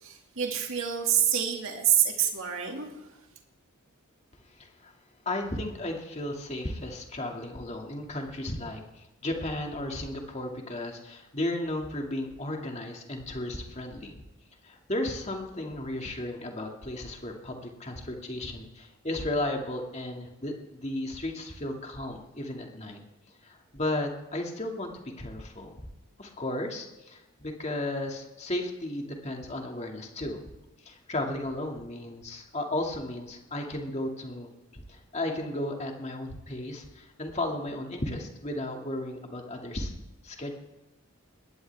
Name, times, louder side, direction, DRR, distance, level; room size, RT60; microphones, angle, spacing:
voice 1, 0.0-2.9, right 9 dB, 65° right, 2 dB, 2.2 m, -27 dB
voice 2, 4.5-4.9 5.3-14.2 14.6-23.0 23.4-24.9 25.2-25.7 26.2-30.4 30.8-39.9 40.2-40.5, left 1 dB, 30° left, 2 dB, 2.2 m, -34 dB
21.0 x 17.0 x 3.5 m, 1.0 s
head